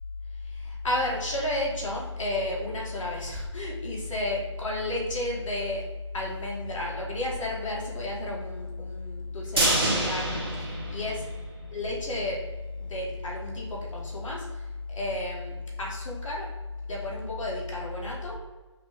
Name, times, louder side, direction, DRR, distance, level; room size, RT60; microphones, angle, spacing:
voice 1, 0.5-5.8 6.1-11.2 11.7-12.4 12.8-14.4 14.9-16.5 16.9-18.3, left 2 dB, 5° left, -14 dB, 0.4 m, -32 dB
sound 1, 9.6-11.7 12.0-12.1 12.5-12.6, right 1 dB, 50° right, 1.2 m, -27 dB
5.1 x 2.8 x 3.4 m, 1.2 s
hypercardioid pair, 175°, 16 cm